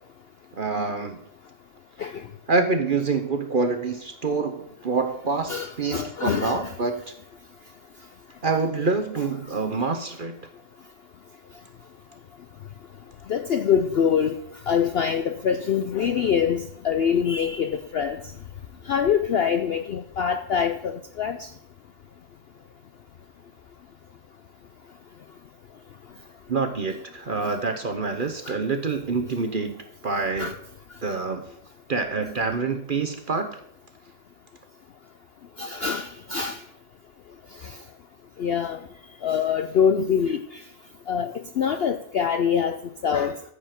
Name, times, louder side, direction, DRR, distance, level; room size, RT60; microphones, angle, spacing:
voice 1, 0.6-1.2 2.5-6.9 8.4-10.4 26.5-30.5 31.0-31.4 31.9-33.5, right 4 dB, 45° right, 7 dB, 0.8 m, -26 dB
voice 2, 5.5-6.8 13.3-14.4 14.7-18.3 18.9-21.5 28.5-28.6 30.4-30.6 35.6-36.6 37.6-37.8 38.4-38.8 39.2-40.6 41.1-43.5, left 7 dB, 75° left, 9 dB, 0.5 m, -25 dB
14.0 x 5.0 x 5.8 m, 0.70 s
omnidirectional pair, 1.6 m